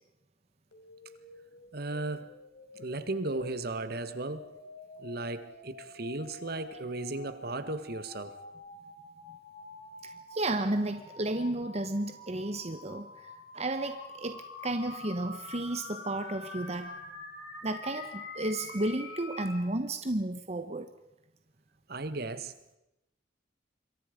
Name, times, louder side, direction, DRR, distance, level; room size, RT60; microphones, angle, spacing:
sound 1, 0.7-19.6, left 2 dB, 70° left, 5.2 m, -47 dB
voice 1, 1.7-2.3 2.8-4.5 5.0-8.4 21.9-22.5, right 2 dB, 60° right, 1.6 m, -35 dB
voice 2, 10.0-17.0 17.6-20.9, right 1 dB, 35° right, 1.2 m, -33 dB
27.0 x 23.0 x 5.2 m
head